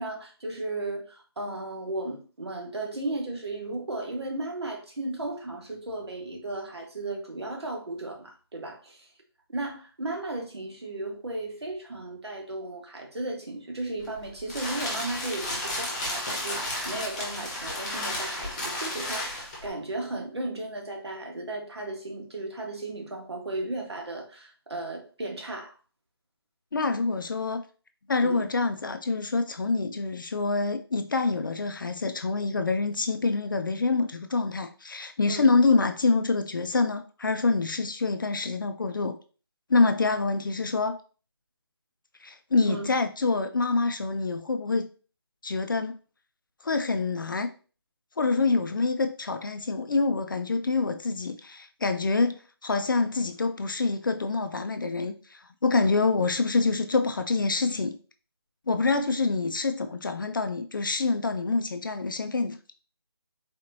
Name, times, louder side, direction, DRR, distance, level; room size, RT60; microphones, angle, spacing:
voice 1, 0.0-9.1 9.5-25.7 28.2-28.5 35.3-35.5 42.6-43.0, right 2 dB, 80° right, 1.4 m, -35 dB
sound 1, 14.0-19.7, left 1 dB, 20° left, 0.9 m, -33 dB
voice 2, 26.7-27.6 28.1-39.2 39.7-41.0 42.2-44.9 45.4-46.0 46.6-47.5 48.2-58.0 58.7-62.6, left 3 dB, 50° left, 0.4 m, -26 dB
4.1 x 3.0 x 2.6 m
figure-of-eight pair, 170°, 13 cm